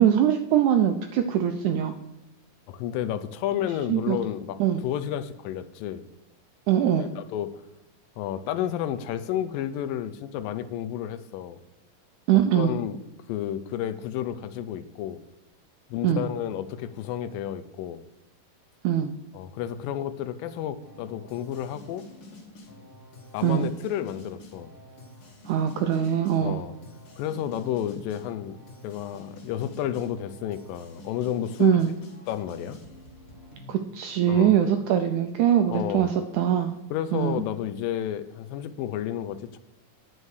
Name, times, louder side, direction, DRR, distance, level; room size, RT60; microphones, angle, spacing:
voice 1, 0.0-1.9 3.9-4.2 4.6-4.8 6.7-7.1 12.3-12.8 16.0-16.3 18.8-19.1 23.4-23.7 25.5-26.6 31.6-31.9 33.7-36.8 37.1-37.4, right 10 dB, 85° right, 7 dB, 1.7 m, -22 dB
voice 2, 2.7-6.0 7.0-7.6 8.2-11.6 12.3-13.0 13.3-15.2 15.9-18.0 19.3-22.0 23.3-24.7 26.4-26.7 27.2-28.6 28.8-31.8 32.3-32.8 34.3-34.5 35.7-36.1 36.9-39.6, left 10 dB, 85° left, 12 dB, 2.3 m, -31 dB
sound 1, 20.8-33.8, left 1 dB, 45° left, 2.3 m, -48 dB
9.8 x 5.4 x 6.4 m, 0.94 s
omnidirectional pair, 4.0 m